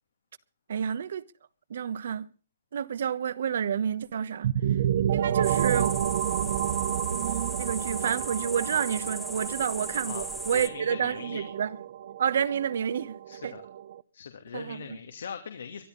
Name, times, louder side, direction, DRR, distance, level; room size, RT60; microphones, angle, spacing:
voice 1, 0.7-1.2 1.7-2.3 2.7-4.5 5.1-6.0 7.1-11.7 12.2-13.5 14.5-15.0, right 8 dB, 65° right, 1.2 m, -29 dB
sound 1, 4.4-14.0, right 10 dB, 45° right, 0.8 m, -30 dB
sound 2, 5.4-10.7, equal, ahead, 1.1 m, -38 dB
voice 2, 10.5-11.4 13.3-13.6 14.1-15.8, left 7 dB, 85° left, 2.6 m, -40 dB
23.5 x 13.0 x 4.0 m
hypercardioid pair, 170°, 0 cm